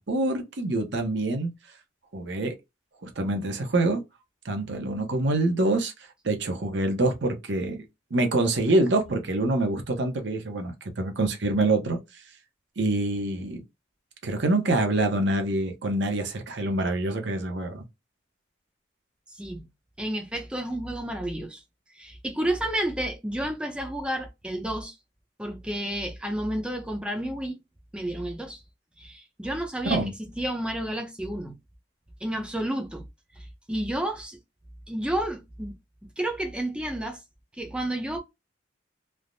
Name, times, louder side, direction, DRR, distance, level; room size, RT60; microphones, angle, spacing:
voice 1, 0.0-1.5 2.1-2.5 3.0-4.0 4.4-5.9 6.2-7.8 8.1-12.0 12.8-13.6 14.2-17.8 29.8-30.1, right 2 dB, 60° right, 0.7 m, -25 dB
voice 2, 19.3-19.7 20.0-21.6 21.9-25.0 25.4-27.6 27.9-28.6 29.0-30.0 30.4-31.6 32.2-33.1 33.4-34.4 34.9-35.7 36.2-37.2 37.5-38.2, right 1 dB, 5° right, 0.5 m, -31 dB
3.3 x 2.0 x 2.5 m
head